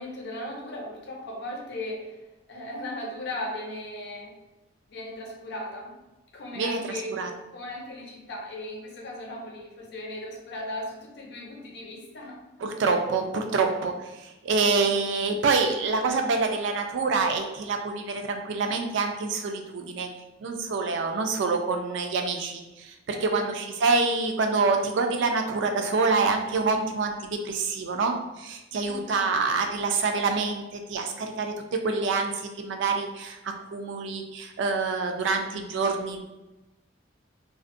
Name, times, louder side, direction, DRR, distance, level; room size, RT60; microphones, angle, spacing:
voice 1, 0.0-2.2 2.5-4.3 4.9-5.9 6.3-7.2 7.5-12.4 23.1-23.5 28.9-29.2, left 1 dB, 60° left, -1 dB, 0.6 m, -37 dB
voice 2, 6.6-7.3 12.6-20.1 20.4-36.2, right 4 dB, 65° right, 4 dB, 0.3 m, -26 dB
2.4 x 2.0 x 2.5 m, 1.0 s
head